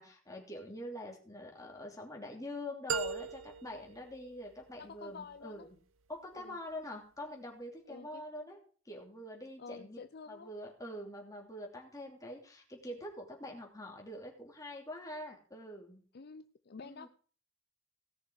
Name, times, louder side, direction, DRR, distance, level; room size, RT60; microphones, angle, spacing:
voice 1, 0.0-5.7 6.1-8.6 8.8-10.0 10.3-16.0 16.8-17.1, left 1 dB, 15° left, 0 dB, 3.2 m, -45 dB
sound 1, 2.9-4.9, right 5 dB, 85° right, 0.9 m, -39 dB
voice 2, 4.8-5.7 6.3-6.6 7.9-8.3 9.6-10.5 16.1-17.1, left 5 dB, 50° left, 11 dB, 0.5 m, -49 dB
17.5 x 6.6 x 4.8 m, 0.42 s
head